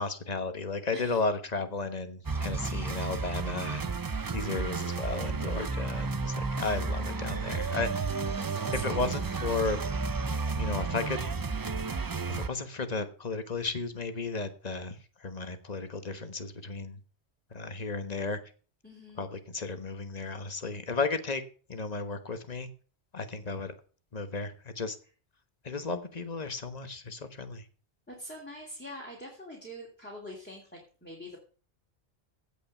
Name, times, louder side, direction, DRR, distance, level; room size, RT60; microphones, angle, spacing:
voice 1, 0.0-3.9 4.3-8.1 8.7-9.8 10.6-11.2 12.3-17.0 17.5-18.4 19.2-21.4 21.7-22.7 23.1-23.7 24.1-25.0 25.6-27.6, left 4 dB, 40° left, 10 dB, 1.3 m, -34 dB
sound 1, 2.2-12.5, right 4 dB, 35° right, 0.3 m, -32 dB
voice 2, 8.1-9.1 18.8-19.3 28.1-31.4, equal, 10° left, -2 dB, 2.8 m, -44 dB
16.0 x 5.3 x 6.6 m, 0.40 s
omnidirectional pair, 1.1 m